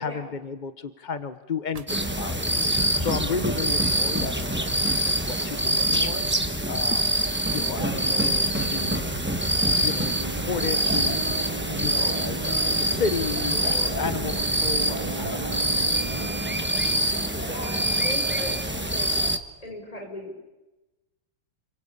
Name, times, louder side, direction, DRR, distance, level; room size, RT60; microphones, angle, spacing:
voice 1, 0.0-2.5 3.0-6.2 6.7-7.2 7.5-9.1 9.8-16.8, left 5 dB, 45° left, 11 dB, 0.6 m, -33 dB
sound 1, 1.7-1.9 2.9-3.3 4.2-4.9 5.3-6.1 7.6-18.7, right 5 dB, 75° right, 0.3 m, -38 dB
sound 2, 1.9-19.4, right 1 dB, 10° right, 0.8 m, -25 dB
voice 2, 17.4-19.1 19.6-20.5, left 1 dB, 15° left, 1 dB, 6.3 m, -37 dB
29.5 x 23.0 x 8.6 m, 1.1 s
omnidirectional pair, 2.3 m